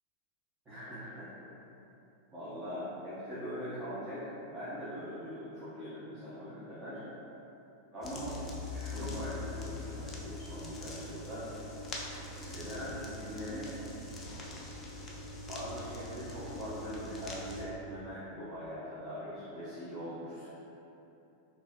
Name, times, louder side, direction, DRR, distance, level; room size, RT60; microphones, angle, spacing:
voice 1, 0.6-1.3 2.3-7.0 7.9-8.3 8.7-11.7 12.2-13.7 15.4-20.5, equal, 20° right, -13 dB, 0.9 m, -41 dB
sound 1, 8.0-17.7, left 2 dB, 20° left, 0.5 m, -42 dB
3.5 x 2.6 x 2.9 m, 3.0 s
figure-of-eight pair, 90°, 0 cm